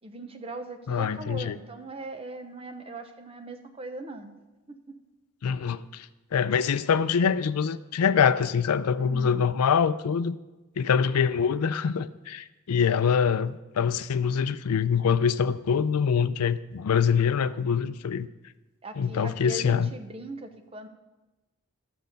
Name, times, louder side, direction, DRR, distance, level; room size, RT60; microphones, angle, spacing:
voice 1, 0.0-4.3 4.7-5.0 9.0-9.4 18.8-20.9, right 2 dB, 25° right, 6 dB, 0.7 m, -40 dB
voice 2, 0.9-1.6 5.4-10.4 10.8-18.3 19.0-19.9, left 6 dB, 85° left, 15 dB, 0.4 m, -24 dB
12.5 x 6.8 x 5.2 m, 1.1 s
head